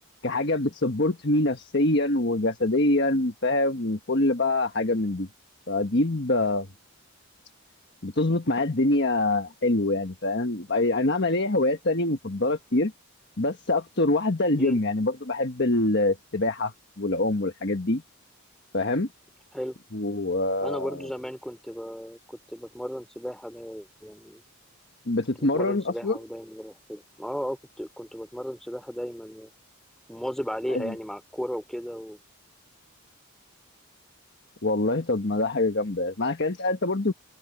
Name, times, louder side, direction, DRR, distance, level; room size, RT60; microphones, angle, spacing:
voice 1, 0.2-5.3 5.7-6.7 8.0-12.9 13.4-18.0 18.7-19.1 19.9-21.1 25.1-26.2 30.7-30.9 34.6-37.1, left 2 dB, 50° left, 1.4 m, -25 dB
voice 2, 20.6-24.4 25.4-29.5 30.1-32.2, equal, ahead, 3.3 m, -35 dB
open air
head